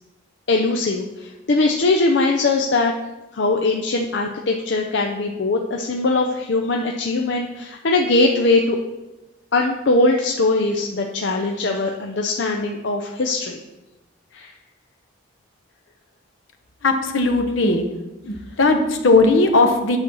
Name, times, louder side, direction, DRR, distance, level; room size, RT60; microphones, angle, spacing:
voice 1, 0.5-2.9 3.3-8.8 9.5-13.6 14.3-14.5, left 2 dB, 65° left, 1 dB, 0.6 m, -21 dB
voice 2, 16.8-17.8 18.2-20.0, left 3 dB, 80° left, 5 dB, 1.0 m, -17 dB
8.7 x 4.3 x 6.2 m, 1.0 s
head